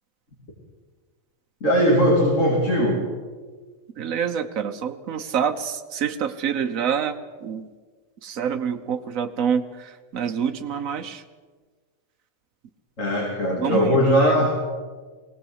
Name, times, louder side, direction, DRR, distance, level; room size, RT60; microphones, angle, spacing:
voice 1, 1.6-3.0 13.0-14.5, equal, 65° left, -3 dB, 3.5 m, -19 dB
voice 2, 4.0-7.7 8.2-11.2 13.5-14.5, right 7 dB, 75° right, 6 dB, 1.4 m, -27 dB
20.0 x 17.5 x 8.0 m, 1.4 s
omnidirectional pair, 1.4 m